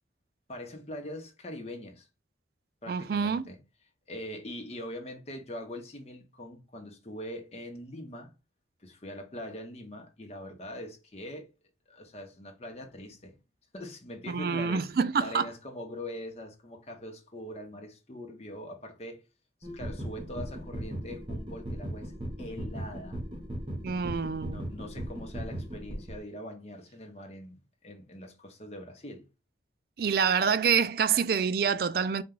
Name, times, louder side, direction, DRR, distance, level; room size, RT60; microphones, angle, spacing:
voice 1, 0.5-2.1 2.8-3.6 4.1-8.3 8.8-11.5 11.9-13.3 13.7-14.9 15.2-19.3 19.7-22.1 22.4-23.2 23.9-29.2, left 1 dB, 35° left, 0.9 m, -42 dB
voice 2, 2.9-3.5 14.3-15.5 23.8-24.6 30.0-32.2, right 6 dB, 55° right, 0.4 m, -27 dB
sound 1, 19.6-26.2, equal, 30° right, 1.0 m, -38 dB
4.3 x 2.4 x 3.7 m
head